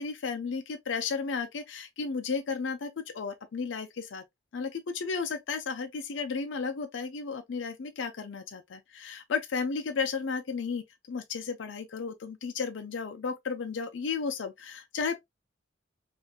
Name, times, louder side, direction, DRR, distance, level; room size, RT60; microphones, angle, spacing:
voice 1, 0.0-4.2 4.5-15.1, left 5 dB, 70° left, 0.5 m, -33 dB
3.8 x 2.5 x 2.2 m
head